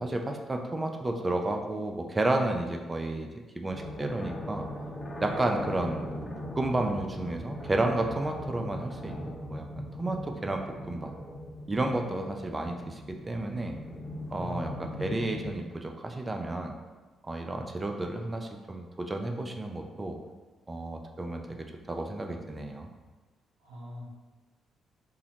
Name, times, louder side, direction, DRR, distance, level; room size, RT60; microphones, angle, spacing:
voice 1, 0.0-4.7 5.2-6.3 6.6-9.7 9.9-11.1 11.7-13.8 14.3-16.7 17.2-20.2 20.7-22.9, right 2 dB, 25° right, 3 dB, 0.4 m, -32 dB
sound 1, 3.7-15.5, left 1 dB, 25° left, 0.7 m, -40 dB
voice 2, 14.3-15.2 23.6-24.1, left 1 dB, 75° right, -5 dB, 0.6 m, -41 dB
2.8 x 2.1 x 2.8 m, 1.3 s
hypercardioid pair, 40°, 0 cm